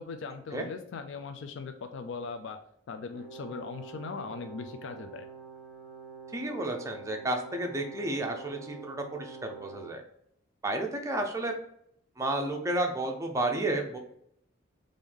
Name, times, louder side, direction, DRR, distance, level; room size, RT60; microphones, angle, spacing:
voice 1, 0.0-2.6 2.9-5.3, left 4 dB, 60° left, 7 dB, 0.3 m, -39 dB
Brass instrument, 3.1-10.0, right 5 dB, 45° left, 0.8 m, -46 dB
voice 2, 6.3-10.0 10.6-11.5 12.2-14.0, right 2 dB, 15° right, 3 dB, 0.5 m, -31 dB
3.6 x 2.6 x 3.3 m, 0.71 s
head